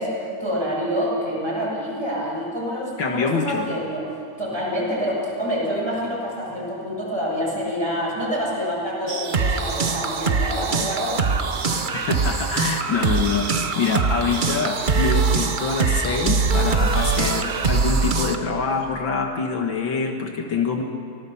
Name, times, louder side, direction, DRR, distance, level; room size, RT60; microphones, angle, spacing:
voice 1, 0.0-4.0 4.4-11.2 11.6-12.0, equal, 10° right, -5 dB, 7.1 m, -27 dB
voice 2, 3.0-3.7 11.9-20.8, left 5 dB, 70° left, 3 dB, 2.2 m, -25 dB
sound 1, 9.1-18.4, right 4 dB, 50° right, 0.5 m, -22 dB
24.0 x 18.5 x 7.1 m, 2.7 s
omnidirectional pair, 2.2 m